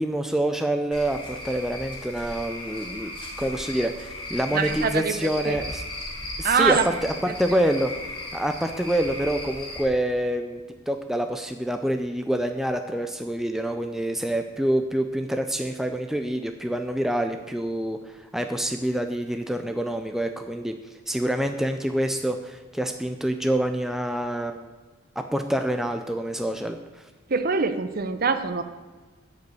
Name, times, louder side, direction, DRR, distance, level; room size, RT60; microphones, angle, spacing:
voice 1, 0.0-5.8 6.4-7.9 8.3-10.6 10.9-20.7 21.1-24.7 25.2-26.8, right 1 dB, ahead, 6 dB, 0.4 m, -26 dB
Cricket / Frog, 0.9-9.8, left 1 dB, 25° left, 2.2 m, -36 dB
voice 2, 4.5-5.6 6.4-6.9 7.3-7.7 27.3-28.6, right 5 dB, 45° right, 10 dB, 0.7 m, -24 dB
10.5 x 5.4 x 8.4 m, 1.3 s
head